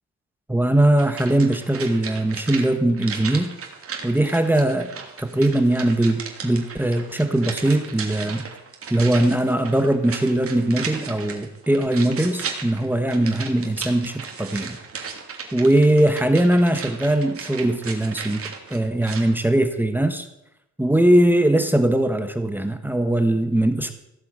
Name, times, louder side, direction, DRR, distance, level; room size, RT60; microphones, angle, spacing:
voice 1, 0.5-3.5 4.0-4.9 5.2-8.4 8.9-14.8 15.5-18.4 18.7-20.3 20.8-23.9, right 1 dB, 5° right, 7 dB, 1.4 m, -20 dB
sound 1, 1.0-19.3 19.6-19.7, right 5 dB, 50° right, 2.9 m, -36 dB
16.0 x 8.3 x 8.1 m, 0.84 s
cardioid pair, 90°, 30 cm